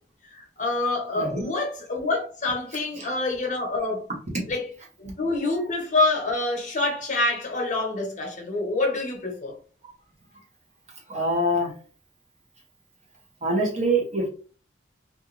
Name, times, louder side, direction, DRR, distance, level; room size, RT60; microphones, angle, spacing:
voice 1, 0.3-4.1 4.5-4.7 5.0-9.6, left 2 dB, 45° left, 0.8 m, -26 dB
voice 2, 1.2-1.5 3.0-3.1 11.1-11.7 13.4-14.3, right 1 dB, 40° right, 1.0 m, -24 dB
2.5 x 2.4 x 3.1 m
head